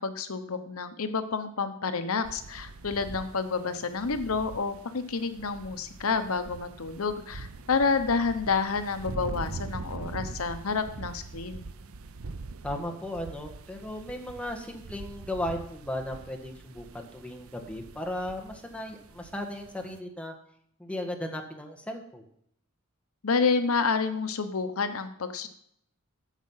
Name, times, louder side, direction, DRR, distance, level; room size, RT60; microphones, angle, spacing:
voice 1, 0.0-11.6 23.2-25.5, left 4 dB, 80° left, 10 dB, 0.9 m, -29 dB
sound 1, 2.2-20.0, right 3 dB, 75° right, 0.7 m, -43 dB
voice 2, 12.6-20.3 20.8-22.2, left 1 dB, 5° left, 1 dB, 1.5 m, -36 dB
12.5 x 7.5 x 5.6 m, 0.70 s
head